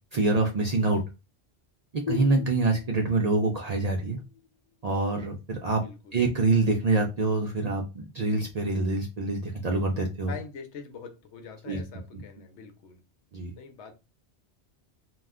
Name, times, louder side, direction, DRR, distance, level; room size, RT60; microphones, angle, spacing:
voice 1, 0.1-1.0 2.1-4.2 4.8-5.8 6.1-10.3 11.7-11.8 12.1-12.2 13.3-13.5, right 3 dB, 55° right, 0.4 m, -25 dB
sound 1, 2.1-5.5, left 9 dB, 45° left, 0.6 m, -40 dB
voice 2, 5.7-6.2 10.3-13.0 13.5-13.9, left 6 dB, 90° left, 0.9 m, -44 dB
2.3 x 2.2 x 3.5 m
omnidirectional pair, 1.1 m